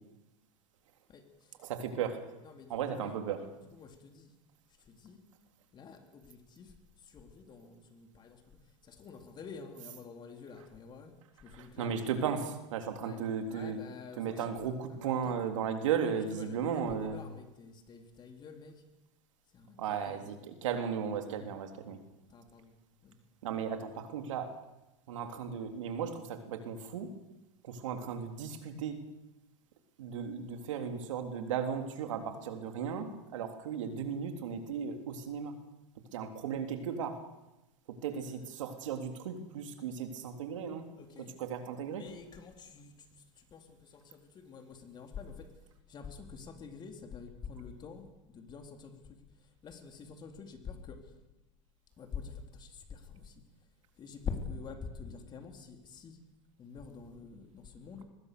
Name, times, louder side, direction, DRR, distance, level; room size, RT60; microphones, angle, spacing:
voice 1, 1.6-2.2 2.7-3.5 11.5-13.8 14.2-17.2 19.8-22.0 23.4-24.5 25.1-27.1 27.6-29.0 30.0-35.5 36.1-37.2 37.9-40.9 41.2-42.0, right 7 dB, 85° right, 6 dB, 3.5 m, -36 dB
voice 2, 2.4-3.1 3.7-4.3 4.9-5.2 5.7-6.7 7.0-8.4 8.8-11.1 11.4-12.0 13.0-13.2 13.5-15.5 16.3-18.8 19.5-20.3 22.3-22.7 23.0-23.2 38.6-38.7 41.0-41.4 41.9-45.5 45.9-49.2 49.6-51.0 52.0-53.4 54.0-56.2 56.6-58.0, left 5 dB, 30° left, 5 dB, 3.8 m, -47 dB
23.0 x 20.5 x 7.0 m, 0.98 s
supercardioid pair, 130°, 16 cm